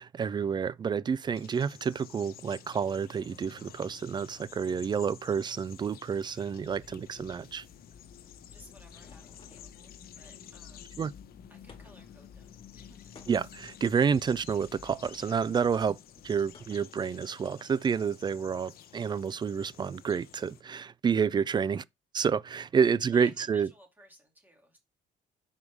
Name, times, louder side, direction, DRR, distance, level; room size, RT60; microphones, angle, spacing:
voice 1, 0.0-7.7 11.0-11.1 13.3-16.0 16.2-21.8 22.1-23.7, right 6 dB, 25° right, 0.3 m, -29 dB
sound 1, 1.3-20.6, left 10 dB, 60° left, 1.0 m, -53 dB
sound 2, 6.6-16.7, left 7 dB, 45° left, 1.3 m, -53 dB
sound 3, 8.2-9.8 11.7-12.2 13.1-13.7 15.0-15.4 16.5-17.0, left 4 dB, 30° left, 1.9 m, -55 dB
voice 2, 8.3-11.0 11.5-13.0 22.7-24.8, equal, 10° right, 2.5 m, -57 dB
5.4 x 4.9 x 4.7 m
cardioid pair, 110°, 17 cm